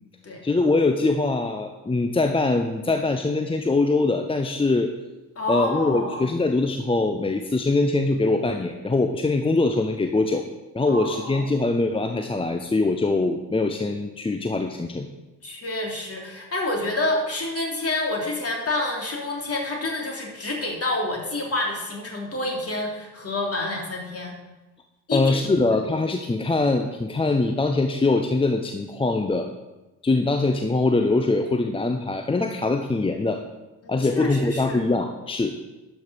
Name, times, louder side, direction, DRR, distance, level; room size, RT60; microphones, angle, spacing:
voice 1, 0.4-4.9 5.5-10.4 10.7-15.1 25.1-29.5 30.0-33.4 33.9-35.5, left 3 dB, 10° left, 5 dB, 0.7 m, -23 dB
voice 2, 5.4-6.3 10.9-11.4 15.4-24.3 25.1-25.6 33.8-34.8, left 2 dB, 30° left, -1 dB, 3.3 m, -28 dB
12.0 x 5.6 x 6.4 m, 1.1 s
figure-of-eight pair, 45°, 46 cm